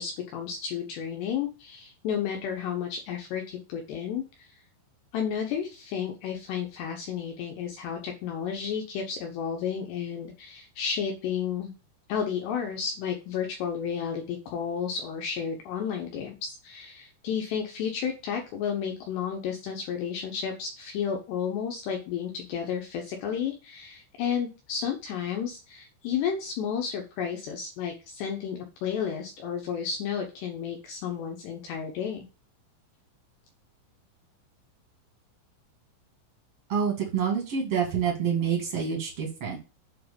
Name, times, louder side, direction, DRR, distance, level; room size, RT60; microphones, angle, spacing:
voice 1, 0.0-4.5 5.1-11.7 12.1-32.2, left 7 dB, 70° left, 3 dB, 2.8 m, -32 dB
voice 2, 36.7-39.6, right 7 dB, 45° right, 0 dB, 1.9 m, -27 dB
7.8 x 4.7 x 6.8 m, 0.31 s
omnidirectional pair, 5.8 m